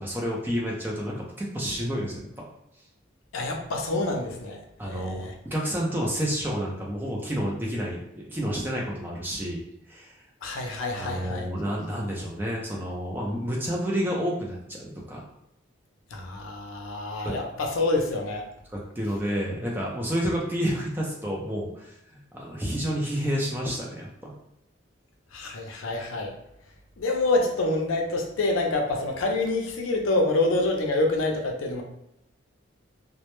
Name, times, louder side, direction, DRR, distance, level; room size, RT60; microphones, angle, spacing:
voice 1, 0.0-2.4 4.8-8.0 8.3-9.6 9.9-10.1 10.9-15.2 17.2-17.3 18.7-24.3, equal, 10° right, -3 dB, 0.4 m, -30 dB
voice 2, 3.3-5.3 10.4-11.5 16.1-18.5 25.3-26.3 27.0-31.8, left 2 dB, 90° left, 2 dB, 0.5 m, -27 dB
2.1 x 2.0 x 2.9 m, 0.82 s
head